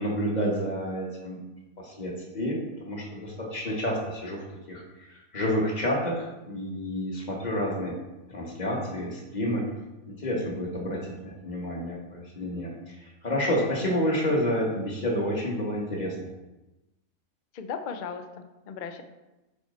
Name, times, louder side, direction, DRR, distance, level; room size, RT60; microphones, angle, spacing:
voice 1, 0.0-1.4 1.8-8.0 8.3-9.7 10.1-16.3, equal, 30° left, -1 dB, 1.4 m, -29 dB
voice 2, 17.5-19.0, left 6 dB, 55° left, 7 dB, 0.5 m, -37 dB
7.1 x 4.9 x 4.2 m, 1.0 s
omnidirectional pair, 1.4 m